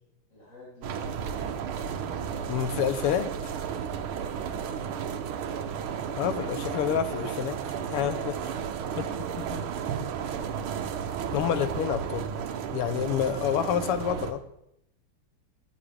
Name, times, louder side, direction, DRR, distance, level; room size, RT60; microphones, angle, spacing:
voice 1, 0.3-1.2 5.4-5.7 8.8-9.7, left 1 dB, 35° left, -9 dB, 3.6 m, -51 dB
sound 1, 0.8-14.3, right 7 dB, 75° right, 1.7 m, -33 dB
voice 2, 2.5-3.5 6.2-7.6 7.9-8.4 9.0-9.1 9.4-9.6 11.3-12.3 12.7-14.4, left 9 dB, 90° left, 12 dB, 1.7 m, -28 dB
18.0 x 7.4 x 3.4 m, 0.79 s
omnidirectional pair, 2.4 m